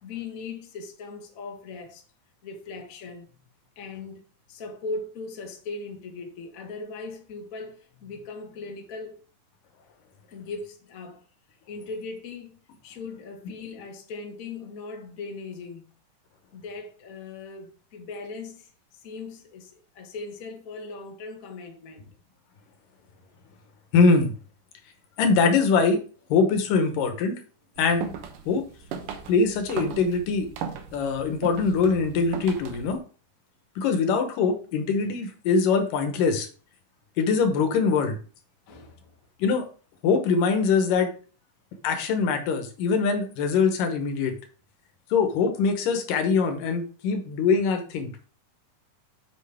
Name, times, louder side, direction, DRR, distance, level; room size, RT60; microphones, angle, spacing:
voice 1, 0.0-2.0 2.4-3.4 3.7-4.2 4.5-9.2 10.3-11.2 11.7-12.5 12.8-15.9 16.5-22.1 38.7-39.1, left 3 dB, 55° left, 0.9 m, -39 dB
voice 2, 23.9-24.3 25.2-26.0 26.3-27.4 27.8-28.1 28.5-28.7 29.3-30.5 30.9-33.0 33.8-36.5 37.2-38.2 39.4-39.7 40.0-41.1 41.8-44.3 45.1-48.1, left 5 dB, 85° left, 2.8 m, -23 dB
sound 1, 27.8-33.0, right 6 dB, 80° right, 2.6 m, -37 dB
8.2 x 5.8 x 3.5 m
omnidirectional pair, 3.7 m